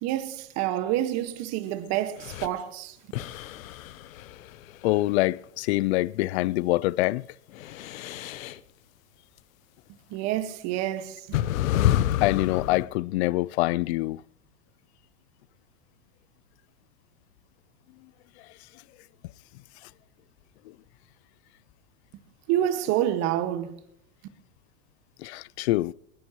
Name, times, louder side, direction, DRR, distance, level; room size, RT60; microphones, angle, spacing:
voice 1, 0.0-2.9 10.1-11.4 22.5-23.8, right 12 dB, 40° right, 1.7 m, -28 dB
sound 1, 2.2-2.5 3.1-5.2 7.5-8.6 10.1-10.2 11.3-12.9, left 12 dB, 70° left, 0.9 m, -28 dB
voice 2, 4.8-7.2 12.2-14.2 25.2-25.9, left 18 dB, 55° left, 0.5 m, -25 dB
21.5 x 19.0 x 3.1 m
supercardioid pair, 140°, 42 cm